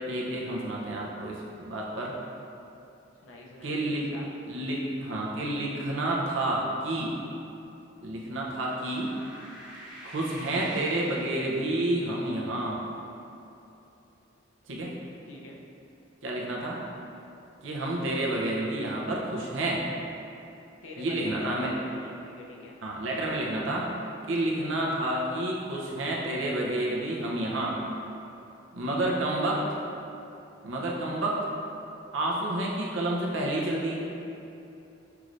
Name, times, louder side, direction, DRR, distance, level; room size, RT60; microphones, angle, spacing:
voice 1, 0.1-2.1 3.6-4.1 4.5-7.1 8.0-9.1 10.0-12.8 14.7-14.9 16.2-16.8 17.6-19.8 21.0-21.7 22.8-23.8 24.3-27.8 28.7-29.6 30.6-31.5 32.1-34.1, right 1 dB, 75° right, -3 dB, 0.7 m, -29 dB
voice 2, 3.2-4.3 15.2-15.6 20.5-22.8 28.9-29.2, left 1 dB, 90° left, -2 dB, 0.6 m, -46 dB
sound 1, 8.2-11.9, equal, 10° right, 1.4 m, -47 dB
5.7 x 3.1 x 2.5 m, 2.8 s
head